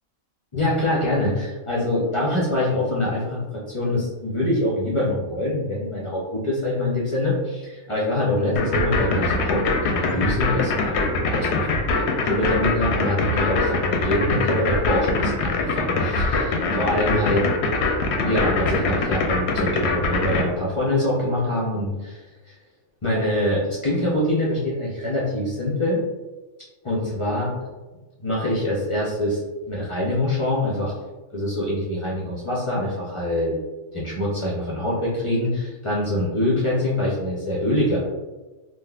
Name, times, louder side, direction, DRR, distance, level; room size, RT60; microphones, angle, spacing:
voice 1, 0.5-11.8 12.2-17.5 18.2-22.5 23.0-26.0 26.8-27.6 28.2-29.4 29.7-30.9 31.3-33.5 33.9-38.0, left 1 dB, 40° left, -6 dB, 0.4 m, -24 dB
sound 1, 8.6-20.4, left 3 dB, 65° left, 0.8 m, -22 dB
3.7 x 2.4 x 2.3 m, 1.2 s
omnidirectional pair, 1.3 m